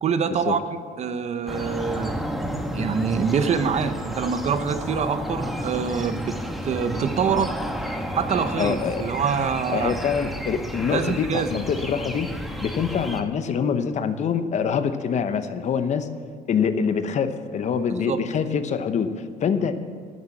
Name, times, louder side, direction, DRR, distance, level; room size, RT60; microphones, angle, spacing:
voice 1, 0.0-0.6 1.0-2.2 2.7-6.4 6.6-7.5 8.1-10.0 10.9-11.5 18.1-18.2, right 6 dB, 45° right, 11 dB, 0.7 m, -25 dB
sound 1, 1.5-13.2, equal, ahead, 1.0 m, -31 dB
voice 2, 8.6-9.1 9.7-12.3 12.6-16.1 16.5-19.7, left 6 dB, 50° left, 10 dB, 0.8 m, -25 dB
12.0 x 7.0 x 7.8 m, 2.1 s
cardioid pair, 105°, 16 cm